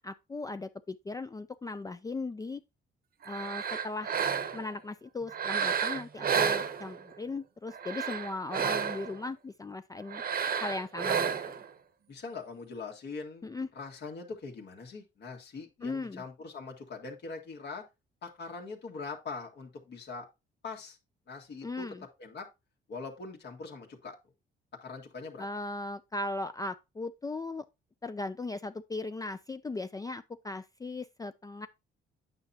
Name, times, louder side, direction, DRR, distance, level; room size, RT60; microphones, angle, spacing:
voice 1, 0.0-2.6 3.3-4.2 4.5-10.2 10.6-11.5 13.4-13.7 15.8-16.2 21.6-22.0 25.4-27.7 28.0-31.7, left 2 dB, 20° left, 0.4 m, -38 dB
sound 1, 3.2-4.7 5.3-7.2 7.7-9.2 10.1-11.7, right 7 dB, 50° right, 0.8 m, -31 dB
voice 2, 12.1-17.8 18.2-20.3 20.6-21.0 21.3-22.5 22.9-24.2 24.8-25.5, left 4 dB, 60° left, 1.9 m, -42 dB
8.8 x 5.7 x 2.8 m
cardioid pair, 90°, 20 cm